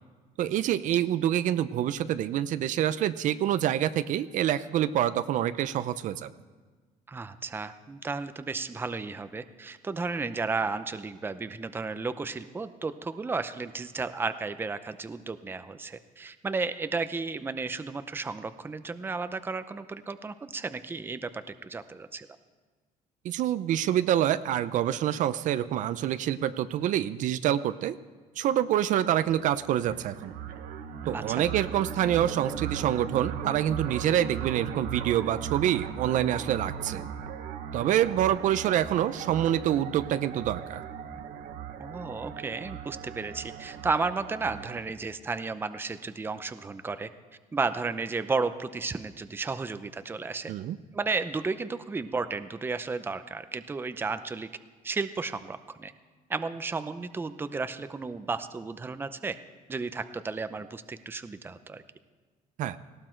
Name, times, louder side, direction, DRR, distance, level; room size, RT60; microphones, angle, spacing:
voice 1, 0.4-6.3 23.2-27.9 28.4-30.3 31.1-37.0 37.7-40.8 50.5-50.8 62.6-62.8, right 11 dB, 60° right, 13 dB, 0.6 m, -26 dB
voice 2, 7.1-22.3 31.1-31.4 41.8-47.1 47.5-50.5 50.9-54.5 54.8-55.9 56.3-59.4 59.7-61.8, right 4 dB, 15° right, 11 dB, 0.6 m, -33 dB
sound 1, 29.2-44.8, right 8 dB, 85° right, 1.1 m, -38 dB
18.5 x 17.0 x 4.5 m, 1.4 s
cardioid pair, 140°, 15 cm